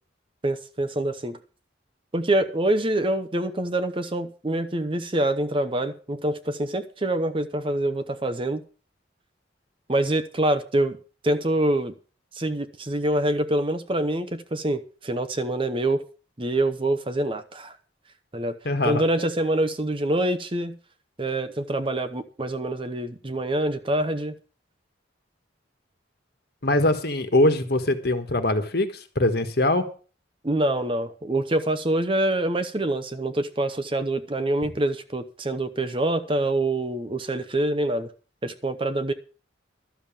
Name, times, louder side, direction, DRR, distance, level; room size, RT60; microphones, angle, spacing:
voice 1, 0.4-1.4 2.1-8.6 9.9-11.0 11.2-11.9 12.4-16.0 16.4-17.7 18.3-18.6 18.8-20.8 21.2-24.3 30.4-38.1 38.4-39.1, right 1 dB, 25° right, 0.8 m, -25 dB
voice 2, 18.6-19.0 26.6-29.8, left 1 dB, 55° left, 1.5 m, -22 dB
12.5 x 7.1 x 7.4 m
head